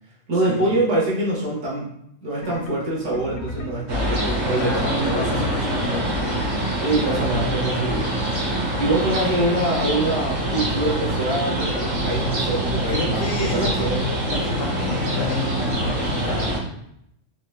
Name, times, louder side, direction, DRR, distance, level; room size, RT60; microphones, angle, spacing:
voice 1, 0.3-1.9 2.2-5.3 6.8-8.2 8.8-14.0, right 2 dB, 75° right, -5 dB, 1.2 m, -24 dB
sound 1, 2.4-7.9, left 2 dB, 60° left, 0.6 m, -37 dB
sound 2, 3.9-16.6, right 1 dB, 45° right, 0.7 m, -25 dB
voice 2, 4.6-6.4 12.9-13.9 14.3-16.6, left 2 dB, 90° left, -1 dB, 1.0 m, -30 dB
3.6 x 2.1 x 2.3 m, 0.75 s
omnidirectional pair, 1.3 m